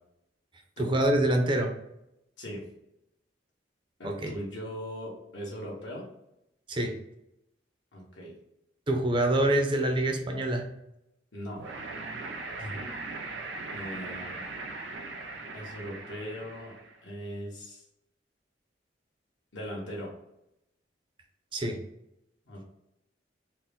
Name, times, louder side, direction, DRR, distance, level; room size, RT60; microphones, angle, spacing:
voice 1, 0.8-1.7 4.0-4.3 6.7-6.9 8.9-10.7 21.5-21.8, right 1 dB, 25° right, 4 dB, 0.5 m, -26 dB
voice 2, 4.0-6.1 7.9-8.3 11.3-11.6 12.6-12.8 13.7-14.4 15.5-16.7 17.0-17.8 19.5-20.1 22.5-22.6, equal, 80° left, -3 dB, 1.4 m, -39 dB
sound 1, 11.6-17.0, right 3 dB, 90° right, 0.7 m, -39 dB
4.3 x 2.1 x 3.6 m, 0.83 s
head